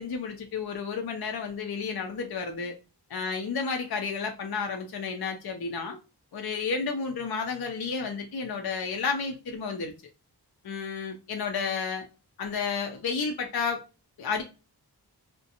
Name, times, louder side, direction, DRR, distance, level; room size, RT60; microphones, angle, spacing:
voice 1, 0.0-2.7 3.1-6.0 6.3-9.9 10.6-12.1 12.4-13.8 14.2-14.4, left 5 dB, 65° left, 0.5 m, -31 dB
2.5 x 2.1 x 2.7 m
wide cardioid pair, 75°, 41 cm